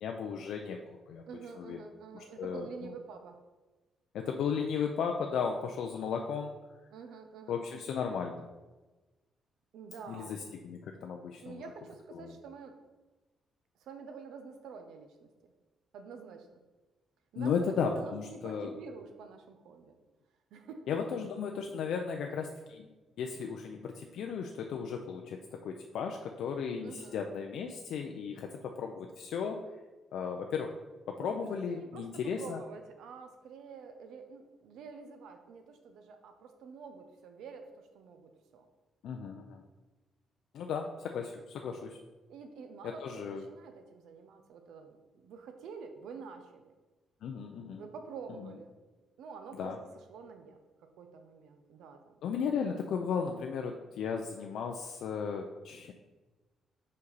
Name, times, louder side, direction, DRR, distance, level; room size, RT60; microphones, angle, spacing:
voice 1, 0.0-1.2 1.6-1.8 2.1-2.7 4.1-6.5 7.5-8.5 10.1-11.6 12.1-12.3 17.4-18.7 20.9-22.9 23.2-29.6 30.1-30.7 31.1-32.6 39.0-39.6 40.5-42.0 42.8-43.4 47.2-47.8 49.6-49.8 52.2-55.9, left 6 dB, 70° left, 3 dB, 0.4 m, -35 dB
voice 2, 1.3-3.4 6.9-7.6 9.7-10.4 11.4-12.8 13.8-15.5 15.9-16.6 17.3-17.5 17.9-20.0 20.5-20.9 26.8-27.2 31.2-32.1 32.4-38.7 40.7-41.0 42.3-46.7 47.8-48.7 49.2-49.7 50.1-52.2, right 5 dB, 80° right, 6 dB, 0.8 m, -48 dB
5.3 x 5.2 x 4.1 m, 1.2 s
cardioid pair, 155°, 0 cm